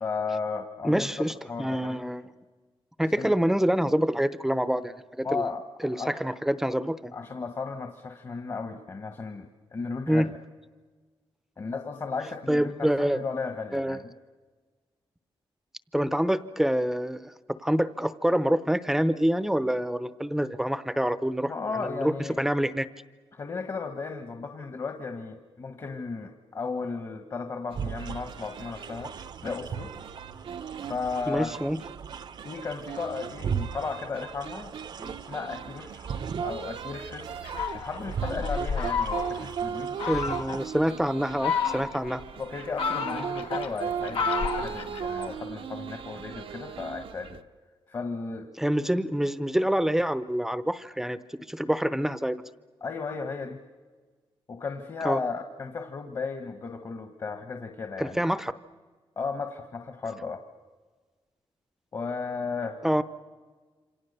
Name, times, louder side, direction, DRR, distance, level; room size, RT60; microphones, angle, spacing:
voice 1, 0.0-2.0 3.2-3.3 5.2-6.1 7.1-10.3 11.6-14.0 21.4-22.4 23.3-29.1 29.4-29.9 30.8-31.5 32.4-34.7 35.0-37.3 37.7-40.0 42.4-47.4 47.9-48.5 52.8-53.6 54.5-58.2 59.2-60.4 61.9-62.8, left 4 dB, 40° left, 7 dB, 1.5 m, -35 dB
voice 2, 0.8-2.2 3.0-5.5 5.8-7.1 10.1-10.3 12.5-13.2 13.7-14.0 15.9-17.3 17.6-22.9 31.3-31.8 40.1-42.2 48.6-51.2 51.5-52.4 55.0-55.2 58.0-58.5 62.8-63.0, equal, 5° right, 14 dB, 0.7 m, -26 dB
sound 1, 27.7-40.9, right 7 dB, 50° right, 0.8 m, -39 dB
sound 2, 27.7-47.4, right 8 dB, 75° right, 0.9 m, -38 dB
Fowl, 37.4-39.5 40.0-40.6 41.2-42.1 42.6-45.3, left 6 dB, 90° left, 2.4 m, -31 dB
27.5 x 26.5 x 6.8 m, 1.4 s
wide cardioid pair, 160°, 9 cm